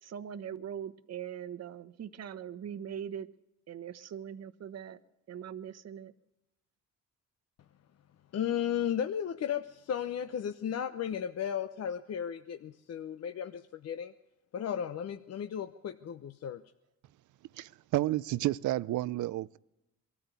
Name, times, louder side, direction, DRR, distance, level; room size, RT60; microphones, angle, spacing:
voice 1, 0.0-3.3 3.7-5.0 5.3-6.1, right 9 dB, 55° right, 12 dB, 1.1 m, -41 dB
voice 2, 8.3-14.1 14.5-16.6, left 9 dB, 55° left, 8 dB, 0.9 m, -35 dB
voice 3, 17.5-19.6, right 16 dB, 75° right, 19 dB, 0.6 m, -31 dB
23.0 x 14.0 x 8.2 m, 0.93 s
cardioid pair, 90°, 30 cm